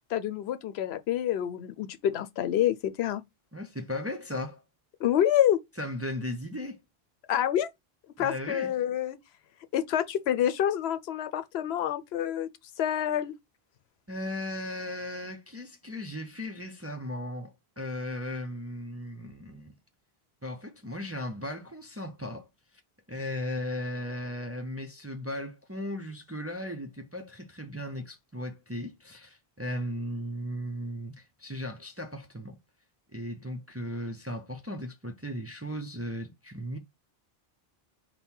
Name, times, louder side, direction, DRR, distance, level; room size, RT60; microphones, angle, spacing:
voice 1, 0.1-3.2 5.0-5.6 7.3-7.7 8.2-9.2 9.7-12.5 12.8-13.3, left 10 dB, 85° left, 0.8 m, -27 dB
voice 2, 3.5-4.6 5.8-6.8 8.2-8.7 14.1-19.7 20.4-22.5 23.1-32.6 33.1-36.8, left 1 dB, 20° right, 0.4 m, -36 dB
5.5 x 2.2 x 4.4 m
omnidirectional pair, 1.0 m